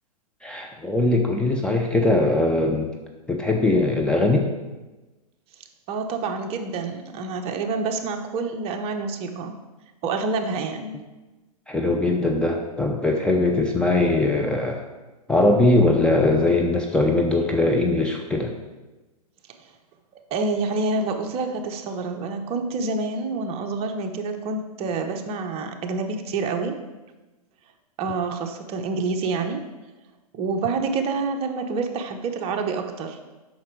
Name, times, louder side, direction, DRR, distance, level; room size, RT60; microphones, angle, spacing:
voice 1, 0.4-2.9 3.3-4.5 11.7-14.8 15.3-18.5, left 2 dB, 5° left, 1 dB, 0.6 m, -21 dB
voice 2, 5.9-9.6 10.0-11.0 20.3-26.8 28.0-29.6 30.3-33.2, right 4 dB, 30° right, 5 dB, 1.0 m, -27 dB
8.4 x 6.0 x 4.6 m, 1.1 s
hypercardioid pair, 120°, 19 cm